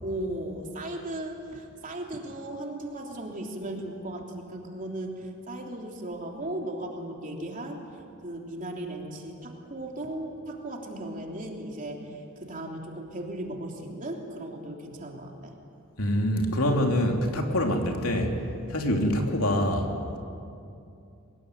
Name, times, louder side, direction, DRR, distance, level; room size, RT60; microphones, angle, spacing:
voice 1, 0.0-7.8 8.2-15.5, right 1 dB, 40° right, 1 dB, 3.3 m, -36 dB
voice 2, 16.0-18.3 18.7-20.2, equal, 75° left, 2 dB, 3.2 m, -25 dB
23.0 x 20.5 x 9.8 m, 2.6 s
head